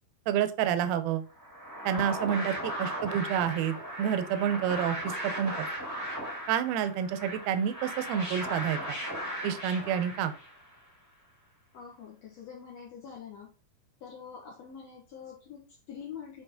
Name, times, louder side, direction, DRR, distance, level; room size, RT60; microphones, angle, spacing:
voice 1, 0.3-1.2 1.9-5.7 6.5-9.0 9.4-10.4, right 9 dB, 80° right, 10 dB, 2.4 m, -29 dB
sound 1, 1.4-10.7, equal, 10° right, 0.7 m, -37 dB
voice 2, 11.7-13.5 14.0-16.4, left 7 dB, 75° left, -2 dB, 1.5 m, -45 dB
8.1 x 3.8 x 3.6 m, 0.34 s
omnidirectional pair, 4.7 m